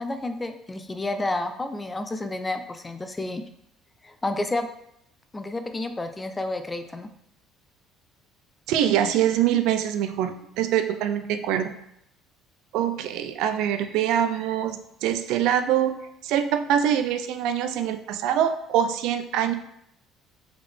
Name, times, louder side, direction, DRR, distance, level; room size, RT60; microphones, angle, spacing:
voice 1, 0.0-3.4 4.0-4.7 5.3-7.1, left 2 dB, 15° left, 8 dB, 0.4 m, -30 dB
voice 2, 8.7-11.7 12.7-19.5, right 10 dB, 75° right, 9 dB, 0.4 m, -24 dB
3.6 x 3.5 x 3.4 m, 0.75 s
cardioid pair, 105°, 0 cm